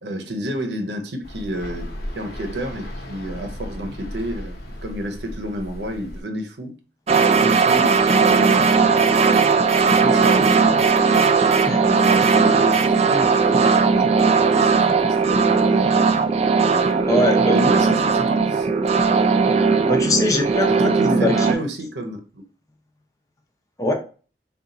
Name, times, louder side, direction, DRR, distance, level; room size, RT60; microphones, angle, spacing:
voice 1, 0.0-1.8 2.2-6.7 7.1-8.7 9.5-10.8 11.4-11.5 11.9-16.1 16.6-18.7 20.7-22.4, equal, 75° right, 0.7 m, -30 dB
sound 1, 1.2-6.2, equal, 55° left, 1.0 m, -35 dB
sound 2, 7.1-21.5, right 5 dB, 35° right, 0.4 m, -17 dB
voice 2, 11.6-12.0 17.1-17.6 19.8-21.6 23.8-23.9, left 2 dB, 20° left, 0.6 m, -22 dB
3.8 x 2.4 x 4.0 m
head